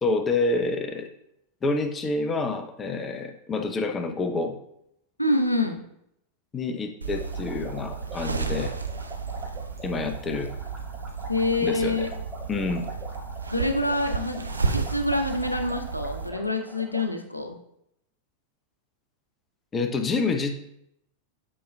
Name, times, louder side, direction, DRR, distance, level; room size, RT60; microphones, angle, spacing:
voice 1, 0.0-1.1 1.6-4.6 6.5-8.7 9.8-10.5 11.6-12.1 12.5-12.9 19.7-20.5, left 3 dB, 20° left, 5 dB, 0.6 m, -28 dB
voice 2, 5.2-5.8 11.3-12.1 13.5-17.6, left 2 dB, 85° left, 5 dB, 0.7 m, -26 dB
sound 1, 7.0-16.3, right 4 dB, 80° right, 0.5 m, -33 dB
sound 2, 7.1-17.1, right 1 dB, 20° right, 1.9 m, -43 dB
8.5 x 5.0 x 2.2 m, 0.77 s
figure-of-eight pair, 90°, 0 cm